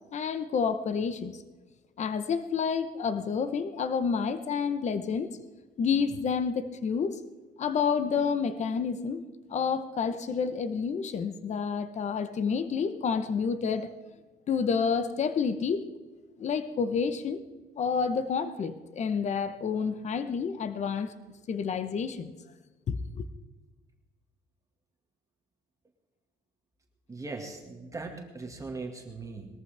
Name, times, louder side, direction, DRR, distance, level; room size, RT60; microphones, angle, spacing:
voice 1, 0.1-1.4 2.0-5.4 5.8-7.2 7.6-9.2 9.5-13.9 14.5-15.9 16.4-17.4 17.8-21.1 21.5-22.3 22.9-23.3, left 6 dB, 45° left, 11 dB, 1.1 m, -29 dB
voice 2, 27.1-29.5, right 3 dB, 20° right, 2 dB, 2.0 m, -39 dB
21.0 x 14.0 x 3.5 m, 1.2 s
cardioid pair, 110°, 17 cm